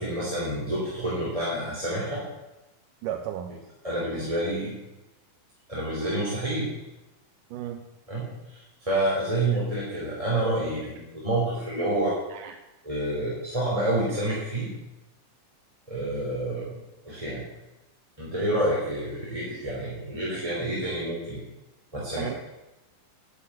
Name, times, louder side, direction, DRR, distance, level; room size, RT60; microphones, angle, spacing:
voice 1, 0.0-2.2 3.8-4.7 5.7-6.7 8.1-12.2 12.8-14.7 15.9-16.7 17.0-17.4 18.2-21.4 21.9-22.4, right 1 dB, 10° right, -7 dB, 3.1 m, -28 dB
voice 2, 3.0-3.6 7.5-7.8 12.3-12.6 22.2-22.4, right 10 dB, 80° right, 6 dB, 2.3 m, -34 dB
11.5 x 8.5 x 8.6 m, 1.0 s
omnidirectional pair, 3.9 m